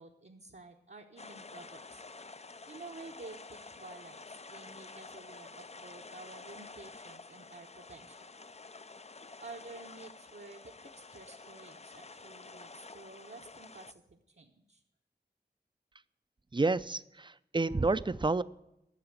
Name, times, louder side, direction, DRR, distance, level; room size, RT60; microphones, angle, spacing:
voice 1, 0.0-2.0 2.7-8.3 9.4-14.8, right 3 dB, 70° right, 1 dB, 1.0 m, -51 dB
sound 1, 1.2-13.9, left 3 dB, 40° left, 0.4 m, -50 dB
voice 2, 16.5-18.4, right 3 dB, 25° right, 15 dB, 0.5 m, -29 dB
11.0 x 6.9 x 9.1 m, 0.85 s
wide cardioid pair, 50°, 18 cm